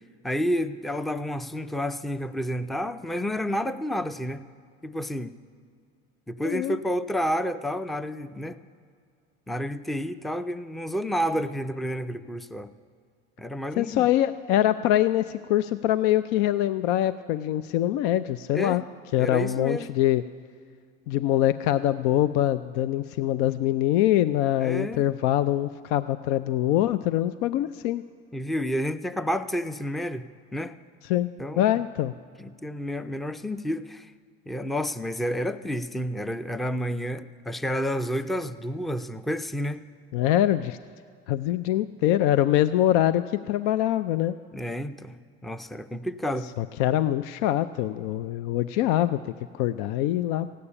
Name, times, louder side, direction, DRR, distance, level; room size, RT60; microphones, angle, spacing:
voice 1, 0.2-4.4 4.8-5.3 6.3-8.6 9.5-12.7 13.4-14.1 18.5-18.8 19.2-19.9 24.6-25.0 28.3-30.8 31.4-31.7 32.4-34.1 34.5-39.8 44.5-45.2 45.4-46.5, equal, ahead, 13 dB, 0.4 m, -30 dB
voice 2, 6.4-6.8 13.8-18.8 19.1-20.2 21.1-28.0 31.0-31.3 31.6-32.1 40.1-40.8 41.3-44.3 46.6-50.5, left 13 dB, 75° left, 13 dB, 0.5 m, -24 dB
15.5 x 8.5 x 9.8 m, 2.1 s
supercardioid pair, 110°, 30 cm